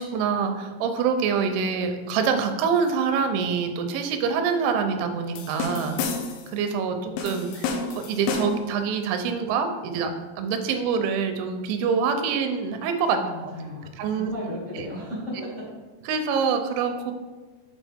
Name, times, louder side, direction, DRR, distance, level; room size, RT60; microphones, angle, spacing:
voice 1, 0.0-6.0 6.5-7.7 7.9-13.5 14.0-14.3 14.8-14.9 15.4-15.5 16.1-17.1, right 6 dB, 90° right, 6 dB, 3.1 m, -25 dB
sound 1, 5.4-6.5 7.2-8.7, left 4 dB, 85° left, 3.0 m, -30 dB
voice 2, 13.1-15.4, left 1 dB, 40° left, -8 dB, 1.0 m, -35 dB
8.2 x 4.5 x 3.5 m, 1.2 s
omnidirectional pair, 5.2 m